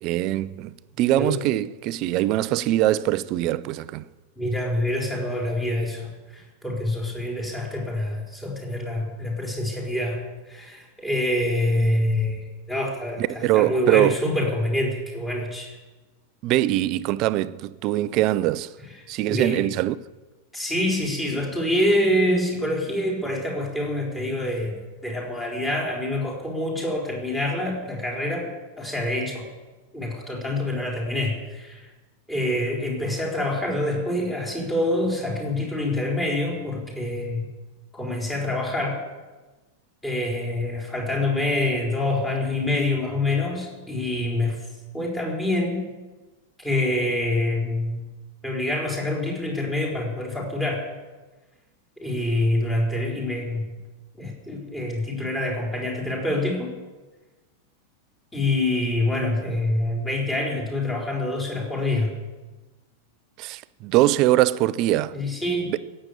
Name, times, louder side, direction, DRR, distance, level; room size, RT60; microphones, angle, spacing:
voice 1, 0.0-4.1 13.2-14.2 16.4-18.7 19.1-20.0 63.4-65.2 65.7-65.8, right 15 dB, 40° right, 0.6 m, -22 dB
voice 2, 4.4-10.2 10.5-15.8 19.3-19.6 20.5-28.5 28.8-29.5 29.9-31.9 32.3-37.4 37.9-39.0 40.0-44.6 44.9-45.8 46.6-48.0 48.4-50.8 52.0-53.7 54.2-56.7 58.3-62.1 65.1-65.8, left 1 dB, 10° left, 4.6 m, -26 dB
15.0 x 8.8 x 9.9 m
figure-of-eight pair, 90°, 0 cm